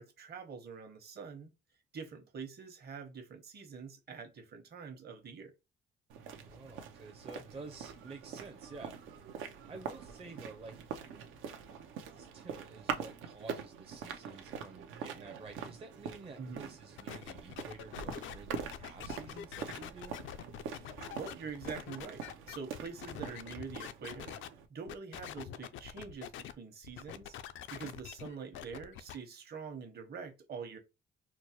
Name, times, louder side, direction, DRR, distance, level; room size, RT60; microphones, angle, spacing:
voice 1, 0.0-1.5 1.9-5.5 16.4-16.8 20.8-24.4 24.7-27.4 27.7-30.8, right 5 dB, 55° right, 1.1 m, -45 dB
sound 1, 6.1-24.7, right 6 dB, 90° right, 0.7 m, -44 dB
voice 2, 6.4-9.2 9.7-10.9 12.1-20.1, right 4 dB, 30° right, 0.6 m, -50 dB
sound 2, 17.0-24.5 24.9-26.5 26.8-29.1, left 10 dB, 80° left, 0.4 m, -45 dB
4.5 x 2.1 x 2.9 m
cardioid pair, 90°, 20 cm